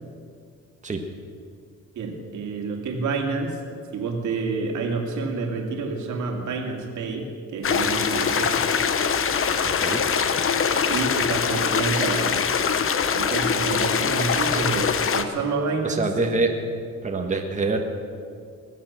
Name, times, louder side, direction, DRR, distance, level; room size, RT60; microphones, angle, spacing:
voice 1, 2.0-3.6 3.9-8.6 10.9-12.6 13.1-16.1, right 4 dB, 75° right, 2 dB, 2.5 m, -28 dB
sound 1, 7.6-15.2, left 6 dB, 45° left, 1.0 m, -23 dB
voice 2, 9.6-10.0 15.8-16.5 17.0-17.8, right 3 dB, 25° right, 2 dB, 1.5 m, -25 dB
20.5 x 7.4 x 7.5 m, 2.3 s
cardioid pair, 90°, 30 cm